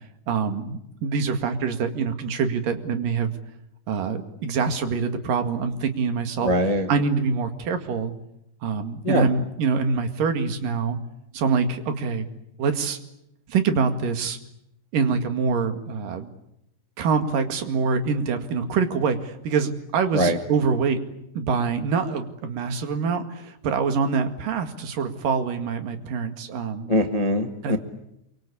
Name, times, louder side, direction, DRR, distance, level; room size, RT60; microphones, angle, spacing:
voice 1, 0.3-3.3 3.9-6.5 6.9-8.1 8.6-11.0 11.3-12.3 12.6-13.0 13.5-14.4 14.9-16.3 17.0-21.0 21.4-27.0 27.6-27.8, right 5 dB, 85° right, 7 dB, 3.7 m, -25 dB
voice 2, 6.4-6.9 9.0-9.3 20.1-20.4 26.9-27.8, equal, 30° left, 6 dB, 0.7 m, -22 dB
27.0 x 24.0 x 8.5 m, 0.78 s
omnidirectional pair, 3.8 m